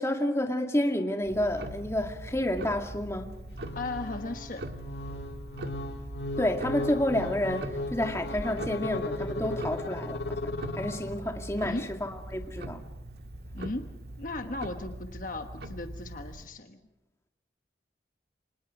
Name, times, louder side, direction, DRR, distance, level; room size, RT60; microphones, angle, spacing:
voice 1, 0.0-3.4 6.4-12.8, left 1 dB, 15° left, 4 dB, 2.1 m, -30 dB
Tick-tock, 1.2-16.5, right 1 dB, 65° right, 1.8 m, -41 dB
sound 1, 3.5-11.5, left 2 dB, 85° left, 1.7 m, -36 dB
voice 2, 3.7-4.6 11.6-11.9 13.5-13.9 14.2-16.8, left 2 dB, 50° left, 6 dB, 1.2 m, -36 dB
29.5 x 25.5 x 5.0 m, 0.90 s
head